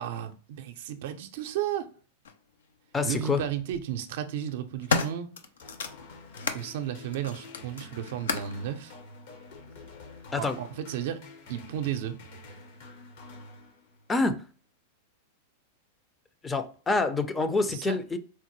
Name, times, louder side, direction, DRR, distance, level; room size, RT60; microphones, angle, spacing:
voice 1, 0.0-1.9 3.0-5.3 6.5-9.0 10.4-12.2 17.7-18.0, right 10 dB, 70° right, 0.5 m, -33 dB
sound 1, 2.2-2.4 3.5-3.8 4.4-6.7 7.1-8.6 9.5-9.6, left 5 dB, 90° left, 0.5 m, -32 dB
voice 2, 2.9-3.4 10.3-10.6 14.1-14.4 16.4-18.2, left 3 dB, 15° left, 0.4 m, -27 dB
sound 2, 5.6-14.2, left 2 dB, 65° left, 1.0 m, -48 dB
4.4 x 2.1 x 3.0 m
hypercardioid pair, 125°, 0 cm